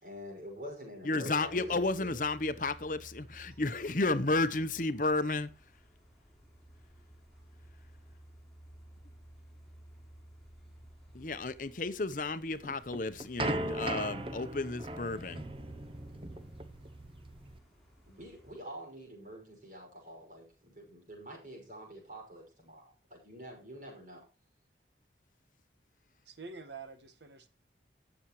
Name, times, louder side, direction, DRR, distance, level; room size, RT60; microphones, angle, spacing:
voice 1, 0.0-2.2 18.1-24.3, equal, 45° right, 5.8 m, -47 dB
voice 2, 1.0-5.5 11.1-15.5, left 2 dB, 45° left, 0.8 m, -32 dB
sound 1, 1.4-18.5, right 1 dB, ahead, 5.2 m, -56 dB
sound 2, 12.6-17.6, right 1 dB, 30° right, 0.8 m, -38 dB
voice 3, 26.2-27.5, right 4 dB, 85° right, 1.5 m, -47 dB
19.0 x 7.1 x 3.1 m
head